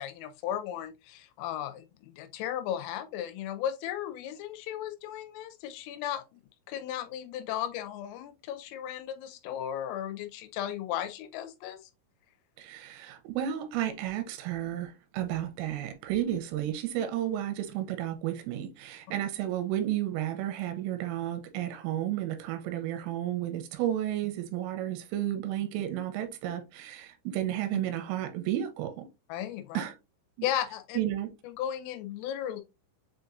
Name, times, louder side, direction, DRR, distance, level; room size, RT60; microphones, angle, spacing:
voice 1, 0.0-6.4 6.7-11.8 15.2-15.3 29.3-29.8 30.4-31.0 31.4-32.6, left 10 dB, 80° left, 3.1 m, -35 dB
voice 2, 12.6-29.1 29.7-29.9 31.0-31.3, right 12 dB, 85° right, 3.1 m, -32 dB
7.5 x 2.6 x 2.5 m
omnidirectional pair, 5.9 m